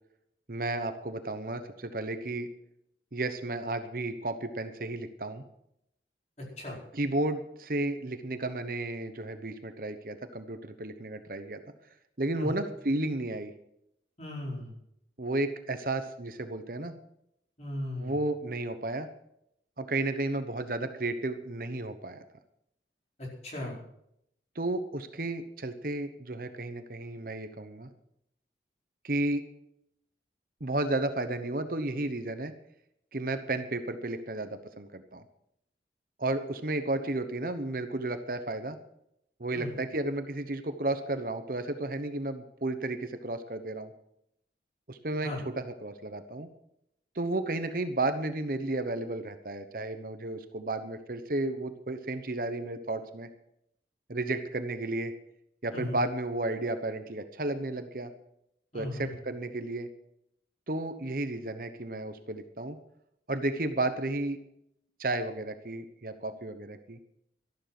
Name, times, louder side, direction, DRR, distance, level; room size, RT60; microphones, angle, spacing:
voice 1, 0.5-2.5 3.1-5.4 6.9-11.6 12.2-13.5 15.2-16.9 18.0-19.1 19.8-22.2 24.5-27.9 29.0-29.4 30.6-32.5 33.1-35.2 36.2-38.8 39.4-43.9 44.9-46.5 47.1-53.3 54.1-55.1 55.6-58.1 58.7-59.9 60.7-62.8 63.3-64.4 65.0-67.0, right 2 dB, 50° right, 9 dB, 1.0 m, -33 dB
voice 2, 14.2-14.7 17.6-18.1 23.2-23.7 39.5-39.7 45.2-45.4 55.7-55.9 58.7-59.1, left 1 dB, 35° left, -2 dB, 4.6 m, -37 dB
13.0 x 12.0 x 6.0 m, 0.77 s
head